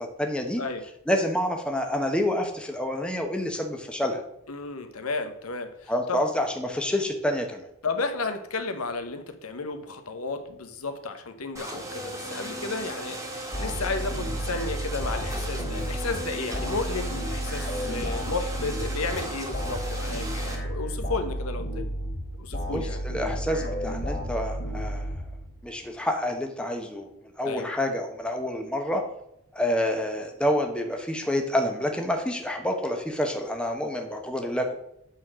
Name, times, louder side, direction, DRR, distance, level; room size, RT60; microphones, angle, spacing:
voice 1, 0.2-0.6 1.1-4.2 5.9-7.7 22.7-25.1 25.6-27.1 27.4-29.0 29.5-34.7, left 1 dB, 5° left, 3 dB, 1.1 m, -28 dB
voice 2, 4.5-6.2 7.8-13.2 13.6-21.9 22.4-23.0 27.4-27.7, left 3 dB, 85° left, 7 dB, 1.1 m, -33 dB
sound 1, 11.6-20.6, right 1 dB, 15° right, 1.7 m, -37 dB
sound 2, 13.5-25.7, equal, 50° left, 2.6 m, -32 dB
9.3 x 4.3 x 6.2 m, 0.79 s
head